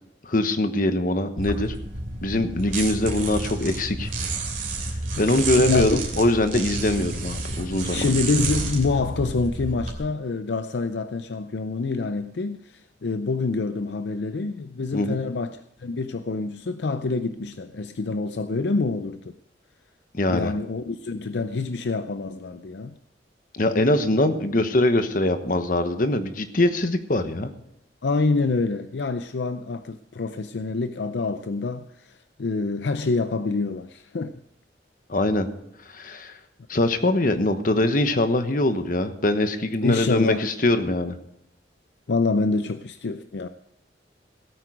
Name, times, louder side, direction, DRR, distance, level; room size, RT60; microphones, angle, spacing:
voice 1, 0.3-1.7 2.2-4.1 5.2-8.1 14.9-15.2 20.1-20.5 23.5-27.5 35.1-35.5 35.9-36.3 36.7-41.2, left 1 dB, 50° left, 1.1 m, -22 dB
sound 1, 1.4-9.9, right 3 dB, 45° right, 3.0 m, -30 dB
voice 2, 5.6-6.0 7.9-19.3 20.3-23.0 28.0-34.4 39.8-40.5 42.1-43.5, left 3 dB, 70° left, 0.5 m, -26 dB
16.5 x 9.1 x 5.0 m
head